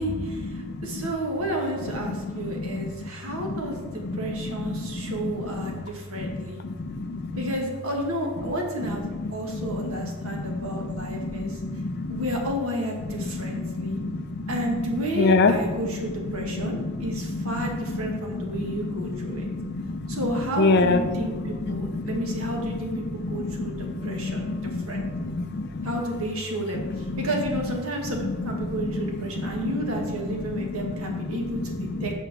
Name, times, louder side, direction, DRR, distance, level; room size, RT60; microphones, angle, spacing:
voice 1, 0.0-6.6 7.4-11.6 12.1-14.0 14.5-19.5 20.1-25.3 25.8-32.1, right 1 dB, 80° right, 1 dB, 1.4 m, -31 dB
voice 2, 2.6-2.9 6.2-6.3 6.8-7.2 9.5-10.1 10.3-10.7 11.1-12.2 13.3-14.5 15.2-15.5 16.6-16.9 17.3-17.4 19.2-20.2 20.6-21.0 21.4-22.4 23.2-23.3 23.8-25.9 29.5-29.6 31.1-31.2, left 3 dB, 50° left, 9 dB, 0.5 m, -27 dB
6.6 x 4.5 x 6.1 m, 1.3 s
head